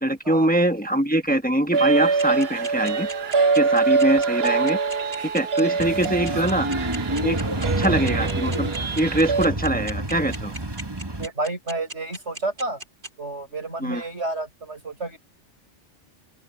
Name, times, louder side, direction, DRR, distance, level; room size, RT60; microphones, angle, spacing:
voice 1, 0.0-3.1 3.6-4.8 5.3-6.7 7.2-8.7 9.0-10.5 13.8-14.0, right 1 dB, 10° left, 1.1 m, -23 dB
sound 1, 1.7-9.5, right 4 dB, 65° right, 1.3 m, -24 dB
sound 2, 2.2-13.1, right 2 dB, 45° right, 3.9 m, -35 dB
sound 3, 5.8-11.3, right 1 dB, 20° right, 1.5 m, -28 dB
voice 2, 11.2-12.8 13.2-15.2, right 2 dB, 90° right, 6.9 m, -30 dB
open air
omnidirectional pair, 1.1 m